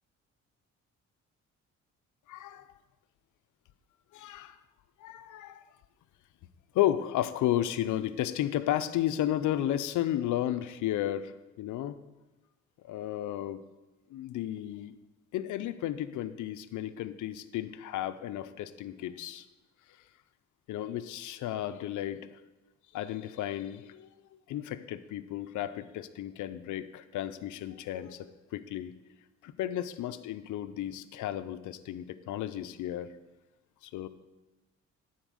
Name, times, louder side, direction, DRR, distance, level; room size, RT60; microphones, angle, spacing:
voice 1, 2.3-2.7 4.1-4.6 5.0-5.7 6.7-12.0 12.8-13.6 14.1-14.9 15.3-19.4 20.7-22.4 22.9-24.1 24.5-28.9 29.4-33.1 33.8-34.1, left 12 dB, 80° left, 12 dB, 0.6 m, -33 dB
12.5 x 4.5 x 6.3 m, 1.1 s
cardioid pair, 90°, 30 cm